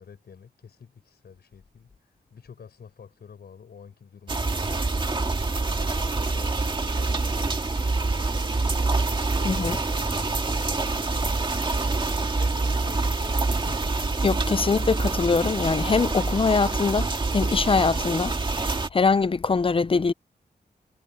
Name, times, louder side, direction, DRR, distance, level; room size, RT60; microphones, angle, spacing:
voice 1, 0.0-5.3 6.0-11.3 12.3-14.1, left 6 dB, 75° left, 5.0 m, -49 dB
sound 1, 4.3-18.9, right 3 dB, 30° right, 1.9 m, -26 dB
voice 2, 9.4-9.8 14.2-18.3 18.9-20.1, left 4 dB, 35° left, 0.6 m, -23 dB
wide cardioid pair, 150°, 17 cm